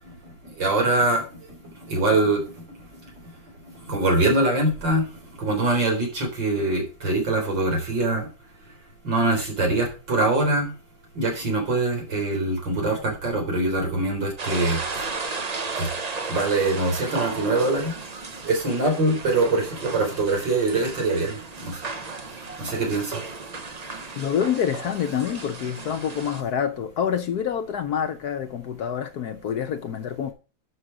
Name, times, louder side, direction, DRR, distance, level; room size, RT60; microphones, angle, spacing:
voice 1, 0.4-1.2 1.8-2.4 3.8-5.1 5.4-8.3 9.0-10.7 11.1-14.8 15.8-15.9 16.3-17.9 18.4-21.8 22.6-23.2, right 2 dB, 70° right, 4.5 m, -23 dB
sound 1, 14.4-26.4, right 4 dB, 40° right, 0.5 m, -34 dB
voice 2, 24.2-30.3, left 8 dB, 65° left, 1.1 m, -27 dB
11.5 x 6.2 x 4.9 m
omnidirectional pair, 2.1 m